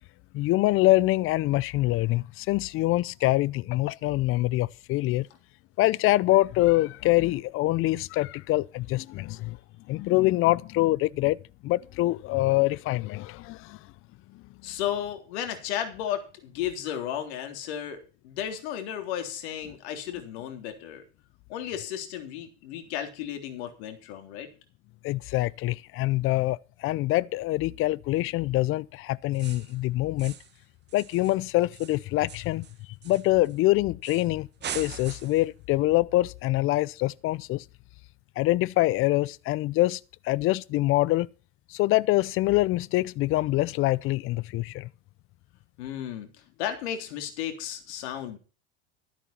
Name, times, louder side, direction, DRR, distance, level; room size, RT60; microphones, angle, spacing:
voice 1, 0.3-5.3 5.8-9.6 9.9-11.4 11.6-13.8 25.0-30.4 30.9-32.6 33.0-34.5 34.7-37.6 38.4-40.0 40.2-41.3 41.7-44.9, left 18 dB, 40° left, 0.6 m, -25 dB
voice 2, 14.6-21.0 21.5-24.5 45.8-46.3 46.6-48.4, left 10 dB, 65° left, 3.4 m, -34 dB
sound 1, 29.3-29.8 30.2-30.6 30.9-33.6 34.0-34.3 34.6-35.5, right 9 dB, 30° right, 1.9 m, -42 dB
13.0 x 11.5 x 4.3 m
hypercardioid pair, 110°, 35 cm